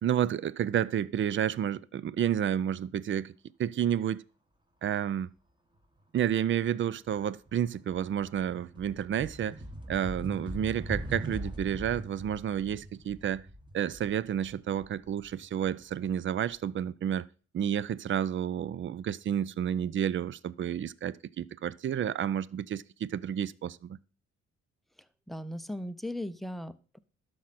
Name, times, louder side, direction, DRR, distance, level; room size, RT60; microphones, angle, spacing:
voice 1, 0.0-3.3 3.6-4.2 4.8-5.3 6.1-9.6 9.9-13.4 13.7-17.3 17.5-24.0, right 9 dB, 40° right, 0.5 m, -30 dB
sound 1, 6.8-6.9 7.2-16.1, right 1 dB, 15° right, 1.4 m, -41 dB
voice 2, 25.3-27.0, left 1 dB, ahead, 0.6 m, -37 dB
11.5 x 6.3 x 4.2 m
cardioid pair, 90°, 30 cm